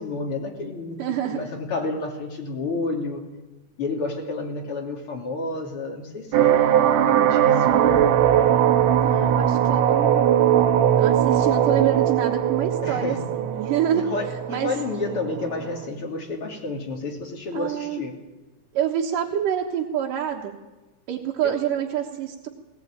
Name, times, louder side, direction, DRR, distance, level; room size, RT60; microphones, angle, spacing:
voice 1, 0.0-1.0 1.3-3.2 3.8-6.6 6.9-8.1 11.9-12.1 12.8-13.3 13.9-18.2 21.4-21.6, left 3 dB, 45° left, 1 dB, 3.7 m, -30 dB
voice 2, 1.0-1.4 8.9-14.0 14.5-14.7 17.5-18.0 18.7-20.6 21.1-22.5, right 10 dB, 90° right, -1 dB, 3.0 m, -27 dB
sound 1, 6.3-15.9, right 10 dB, 65° right, 1.9 m, -20 dB
20.0 x 19.5 x 8.9 m, 1.2 s
omnidirectional pair, 3.7 m